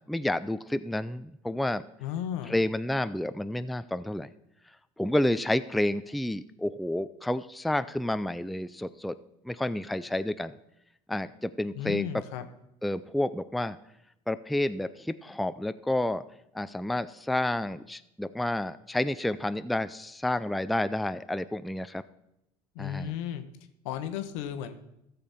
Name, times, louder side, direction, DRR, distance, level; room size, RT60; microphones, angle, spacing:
voice 1, 0.1-1.8 2.5-4.3 5.0-9.1 9.4-10.5 11.1-12.1 12.8-13.8 14.3-16.2 16.5-22.0 22.8-23.1, left 1 dB, ahead, 13 dB, 0.4 m, -30 dB
voice 2, 2.0-2.6 11.7-12.5 22.7-23.4 23.8-24.7, left 9 dB, 75° left, 9 dB, 1.0 m, -34 dB
14.0 x 6.8 x 4.3 m, 0.82 s
hypercardioid pair, 75°, 16 cm